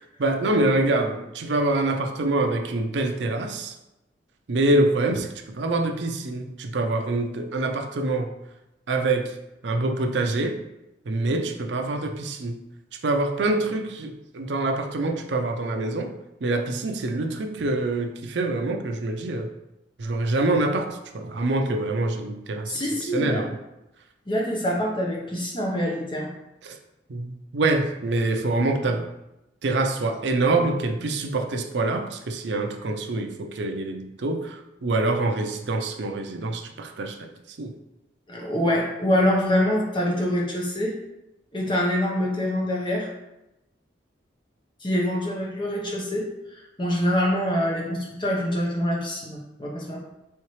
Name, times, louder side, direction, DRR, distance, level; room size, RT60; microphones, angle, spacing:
voice 1, 0.2-3.7 4.5-8.3 8.9-9.3 9.6-10.6 11.1-12.6 13.0-16.1 16.4-19.5 20.0-22.8 23.1-23.5 26.6-26.8 27.1-29.1 29.6-37.1 37.6-37.7, right 2 dB, 70° right, 5 dB, 0.5 m, -25 dB
voice 2, 22.7-23.4 24.3-26.3 38.3-40.9 41.5-43.1 44.8-46.2 46.5-50.0, left 1 dB, 25° left, -2 dB, 0.9 m, -25 dB
4.4 x 3.6 x 3.1 m, 0.91 s
head